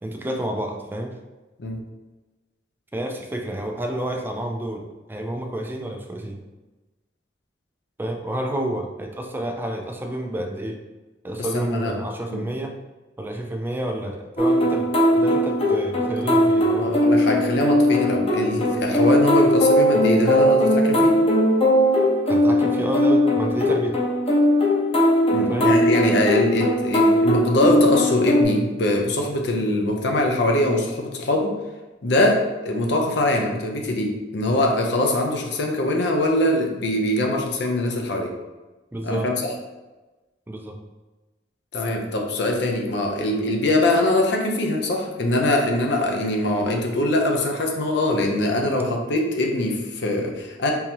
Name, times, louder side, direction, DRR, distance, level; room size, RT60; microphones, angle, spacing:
voice 1, 0.0-1.2 2.9-6.4 8.0-10.8 11.2-12.8 13.2-17.0 22.3-24.0 25.5-25.7 38.9-39.3 40.5-40.8, right 1 dB, 10° right, 2 dB, 0.3 m, -29 dB
voice 2, 11.5-11.9 12.3-12.4 16.8-21.1 25.3-31.5 32.0-32.4 32.6-38.3 39.0-39.5 41.7-50.7, left 1 dB, 65° left, 1 dB, 0.6 m, -22 dB
sound 1, 14.4-28.4, equal, 30° left, 0.8 m, -19 dB
3.7 x 2.7 x 2.9 m, 1.2 s
head